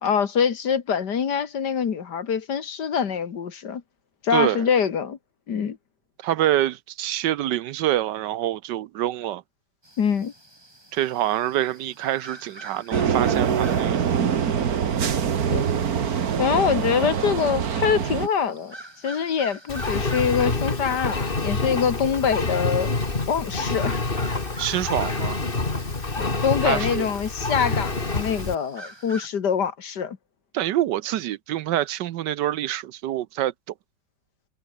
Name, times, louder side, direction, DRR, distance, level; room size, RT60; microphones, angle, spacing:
voice 1, 0.0-3.8 4.2-5.2 5.5-5.8 10.0-10.3 15.5-15.6 16.4-18.8 19.0-22.9 23.3-24.0 26.2-30.2, left 7 dB, 65° left, 2.2 m, -24 dB
voice 2, 4.3-4.7 6.2-9.4 10.9-14.1 24.6-25.4 26.6-27.1 30.5-33.5, right 13 dB, 75° right, 1.3 m, -26 dB
sound 1, 9.8-29.3, right 1 dB, 15° right, 4.0 m, -46 dB
sound 2, 12.9-18.3, right 7 dB, 55° right, 1.8 m, -24 dB
Engine, 19.7-28.5, left 3 dB, 30° left, 2.6 m, -27 dB
omnidirectional pair, 2.0 m